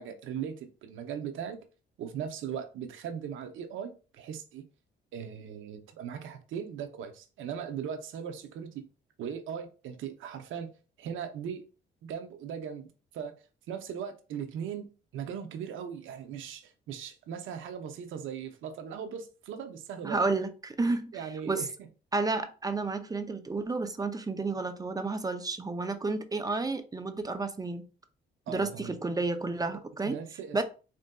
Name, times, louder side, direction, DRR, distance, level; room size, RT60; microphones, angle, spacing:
voice 1, 0.0-1.6 2.0-4.7 5.1-8.9 9.2-10.7 11.0-11.6 12.0-12.9 13.1-13.4 13.7-14.9 15.1-20.2 21.1-21.7 28.5-28.9 30.0-30.6, right 8 dB, 80° right, 0.6 m, -38 dB
voice 2, 20.0-21.7 22.1-27.8 28.5-30.2 30.5-30.6, right 3 dB, 20° right, 0.4 m, -31 dB
4.3 x 2.6 x 2.2 m
cardioid pair, 90°, 20 cm